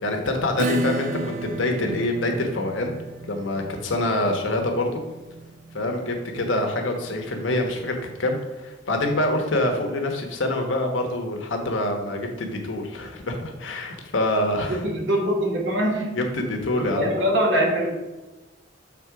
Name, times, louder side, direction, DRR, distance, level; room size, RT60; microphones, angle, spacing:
voice 1, 0.0-2.9 3.3-5.0 5.7-14.8 16.1-17.1, left 1 dB, 90° left, 3 dB, 1.1 m, -25 dB
Acoustic guitar / Strum, 0.6-7.8, right 2 dB, 40° right, 0.3 m, -33 dB
voice 2, 14.7-16.2 16.8-17.9, equal, 70° right, -1 dB, 1.4 m, -23 dB
7.4 x 3.7 x 4.8 m, 1.1 s
head